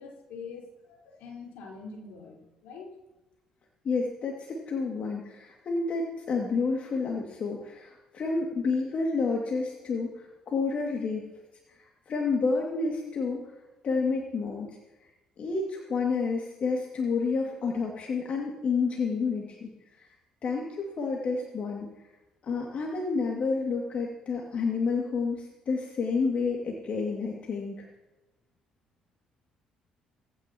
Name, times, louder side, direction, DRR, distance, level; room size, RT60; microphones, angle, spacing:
voice 1, 0.0-2.9, left 4 dB, 70° left, -2 dB, 4.5 m, -44 dB
voice 2, 3.8-11.2 11.7-13.4 13.8-14.7 15.4-19.7 20.0-20.1 20.4-21.9 22.4-27.9, left 4 dB, 50° left, -1 dB, 2.4 m, -29 dB
19.5 x 15.5 x 3.0 m, 1.0 s
hypercardioid pair, 50°, 3 cm